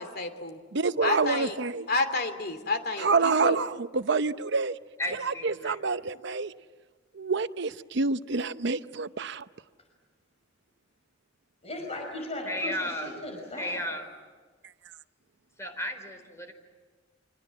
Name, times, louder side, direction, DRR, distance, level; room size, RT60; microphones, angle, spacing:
voice 1, 0.0-0.6 1.0-1.6 1.9-3.6, left 3 dB, 55° left, 8 dB, 2.8 m, -30 dB
voice 2, 0.7-1.9 3.0-4.7 5.2-6.5 7.2-9.4, right 4 dB, 65° right, 13 dB, 0.8 m, -27 dB
voice 3, 5.0-5.8 12.5-13.1 13.6-14.1 15.6-16.5, equal, 15° left, 5 dB, 4.4 m, -34 dB
voice 4, 11.6-13.8, left 1 dB, 35° left, 2 dB, 5.3 m, -37 dB
30.0 x 25.5 x 7.5 m, 1.4 s
head